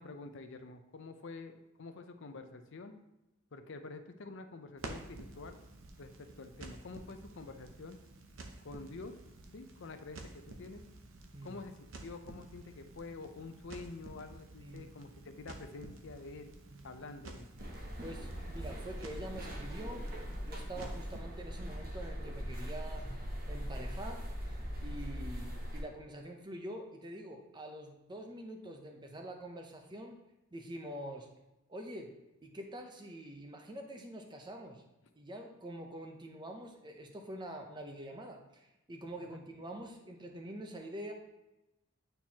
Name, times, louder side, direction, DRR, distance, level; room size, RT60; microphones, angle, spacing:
voice 1, 0.0-2.9 3.5-5.6 6.0-8.0 8.6-9.2 9.5-10.8 11.4-16.5 16.8-17.5 39.2-39.4, left 3 dB, 60° left, 7 dB, 0.6 m, -48 dB
Crackle, 4.8-21.2, right 2 dB, 65° right, 0.8 m, -51 dB
voice 2, 14.6-15.0 16.7-16.8 18.0-20.1 20.4-23.1 23.5-24.5 24.8-30.2 30.5-31.3 31.7-32.1 32.4-34.8 35.2-41.1, right 1 dB, 20° right, 3 dB, 0.7 m, -45 dB
sound 1, 17.6-25.8, equal, 40° right, 1.2 m, -41 dB
9.2 x 4.5 x 2.9 m, 0.94 s
head